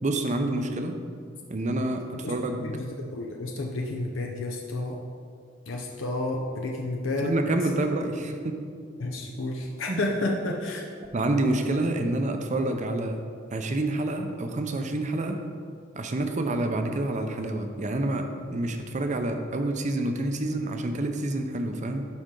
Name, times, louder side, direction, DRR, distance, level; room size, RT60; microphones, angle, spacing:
voice 1, 0.0-1.0 1.5-2.7 7.2-8.6 9.9-10.0 11.1-13.2 13.5-15.4 16.0-18.2 18.5-22.0, right 2 dB, 40° right, 6 dB, 0.6 m, -28 dB
voice 2, 2.6-5.0 5.7-7.4 9.0-10.9, left 2 dB, 75° left, 1 dB, 0.6 m, -30 dB
11.5 x 4.3 x 3.8 m, 2.2 s
head